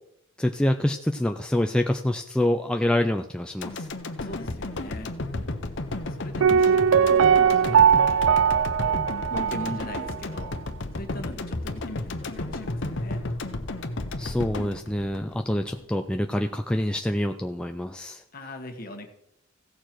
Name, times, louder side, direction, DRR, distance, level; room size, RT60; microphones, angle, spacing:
voice 1, 0.4-3.9 14.2-18.2, left 1 dB, 5° left, 4 dB, 0.4 m, -26 dB
sound 1, 3.6-15.8 16.2-16.3, left 2 dB, 60° left, 0.9 m, -33 dB
voice 2, 4.2-5.1 6.0-8.2 8.7-9.0 9.3-10.6 10.9-13.2 18.3-19.1, left 1 dB, 45° left, 5 dB, 1.4 m, -40 dB
Piano, 6.4-10.2 10.4-10.5, right 7 dB, 70° right, 0.4 m, -20 dB
16.0 x 6.8 x 4.5 m, 0.79 s
head